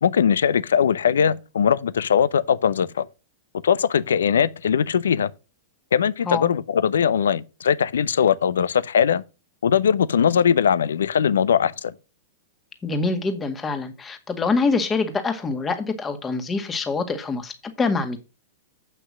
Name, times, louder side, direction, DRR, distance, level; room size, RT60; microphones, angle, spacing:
voice 1, 0.0-3.1 3.6-5.3 5.9-9.2 9.6-11.9, left 7 dB, 75° left, 0.6 m, -20 dB
voice 2, 12.8-18.2, left 4 dB, 20° left, 1.9 m, -25 dB
8.2 x 5.9 x 6.3 m
hypercardioid pair, 105°, 0 cm